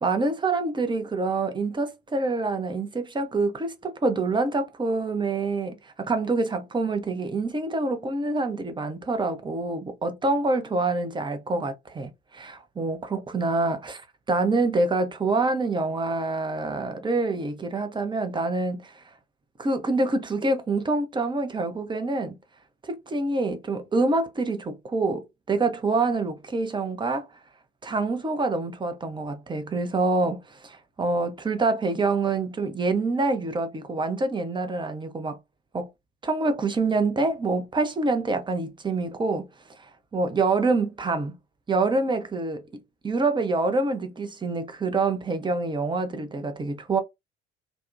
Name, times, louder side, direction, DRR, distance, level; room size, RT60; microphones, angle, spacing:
voice 1, 0.0-14.0 14.3-19.0 19.6-22.4 22.8-27.3 27.8-35.4 35.7-35.9 36.2-39.5 40.1-41.3 41.7-42.6 43.0-47.0, right 3 dB, 15° right, 0.5 m, -26 dB
2.6 x 2.1 x 2.4 m
figure-of-eight pair, 55°, 32 cm